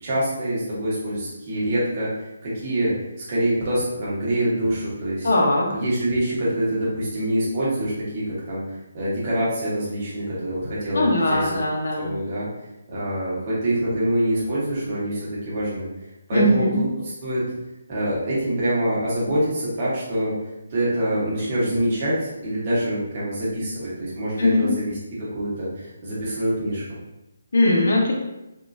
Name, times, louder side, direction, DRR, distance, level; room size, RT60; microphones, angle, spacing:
voice 1, 0.0-2.9 3.2-5.3 5.7-11.5 12.0-12.5 12.9-15.9 16.3-16.8 17.2-17.4 17.9-20.3 20.7-24.9 25.3-26.8, right 1 dB, 25° right, -8 dB, 1.1 m, -25 dB
voice 2, 5.2-5.7 10.9-12.1 16.3-16.8 24.4-24.7 27.5-28.1, left 1 dB, 70° left, -1 dB, 0.8 m, -20 dB
3.6 x 2.5 x 2.5 m, 0.95 s
hypercardioid pair, 175°, 0 cm